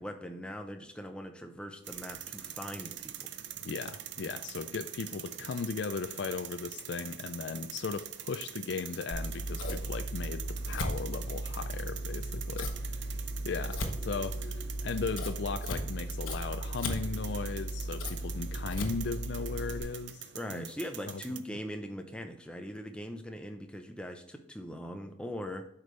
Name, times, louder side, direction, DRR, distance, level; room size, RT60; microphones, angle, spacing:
voice 1, 0.0-3.3 20.4-25.6, equal, 5° left, 5 dB, 0.6 m, -41 dB
sound 1, 1.8-21.4, right 11 dB, 60° right, 0.5 m, -44 dB
voice 2, 3.6-13.1 13.5-20.7 21.1-21.2 21.5-21.6, left 5 dB, 60° left, 9 dB, 0.4 m, -37 dB
Scissors, 9.1-19.8, equal, 80° left, 1.1 m, -36 dB
8.0 x 5.2 x 3.2 m, 0.75 s
head